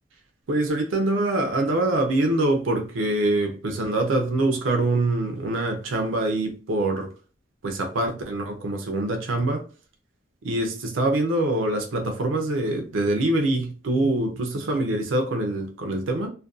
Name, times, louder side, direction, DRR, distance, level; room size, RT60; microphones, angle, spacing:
voice 1, 0.5-7.1 7.6-9.6 10.4-16.3, right 2 dB, 75° right, 0.5 m, -24 dB
2.5 x 2.2 x 2.4 m
head